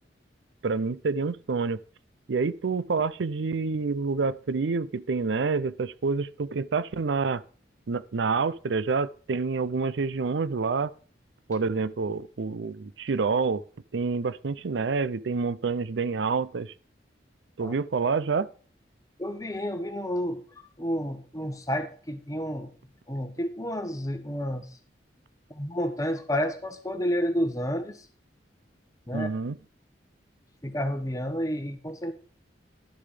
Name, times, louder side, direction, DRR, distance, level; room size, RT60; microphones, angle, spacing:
voice 1, 0.6-1.8 2.3-7.4 7.9-10.9 11.5-13.6 13.9-16.7 17.6-18.5 29.1-29.6, right 4 dB, 80° right, 0.5 m, -27 dB
voice 2, 19.2-20.4 20.8-22.7 23.1-24.7 25.5-28.1 29.1-29.3 30.6-32.1, equal, 20° left, 1.3 m, -30 dB
11.5 x 6.7 x 5.1 m
head